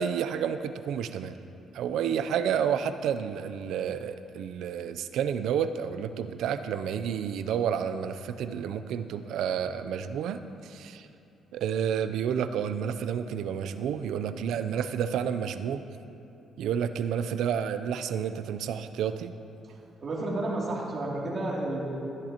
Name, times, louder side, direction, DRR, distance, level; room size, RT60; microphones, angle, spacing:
voice 1, 0.0-1.3 1.7-11.1 11.5-15.9 16.6-19.3, right 8 dB, 80° right, 11 dB, 0.5 m, -30 dB
voice 2, 19.6-22.0, right 2 dB, 45° right, -4 dB, 2.7 m, -32 dB
13.5 x 11.5 x 2.9 m, 2.8 s
cardioid pair, 90°, 0 cm